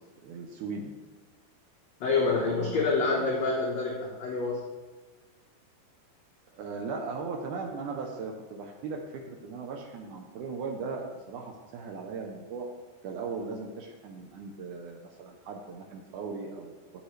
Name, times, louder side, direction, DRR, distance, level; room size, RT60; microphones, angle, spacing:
voice 1, 0.2-0.9 2.3-3.3 6.5-12.7 13.0-16.7, right 4 dB, 85° right, 1 dB, 1.7 m, -38 dB
voice 2, 2.0-4.6, left 4 dB, 65° left, -3 dB, 1.8 m, -27 dB
13.0 x 8.0 x 3.3 m, 1.3 s
omnidirectional pair, 4.9 m